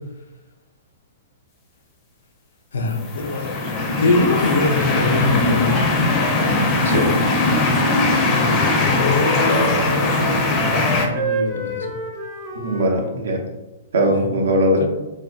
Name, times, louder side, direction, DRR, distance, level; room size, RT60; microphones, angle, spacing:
voice 1, 2.7-3.5 4.0-5.8 8.3-8.5 8.8-11.9 14.1-14.3 14.8-14.9, left 3 dB, 85° left, 4 dB, 0.4 m, -23 dB
sound 1, 3.0-11.1, left 2 dB, 30° left, 0.4 m, -20 dB
sound 2, 7.9-13.1, right 1 dB, 25° right, 0.5 m, -29 dB
voice 2, 12.6-13.4 13.9-14.9, equal, 85° right, 2 dB, 0.5 m, -19 dB
2.4 x 2.1 x 2.4 m, 1.0 s
hypercardioid pair, 135°, 0 cm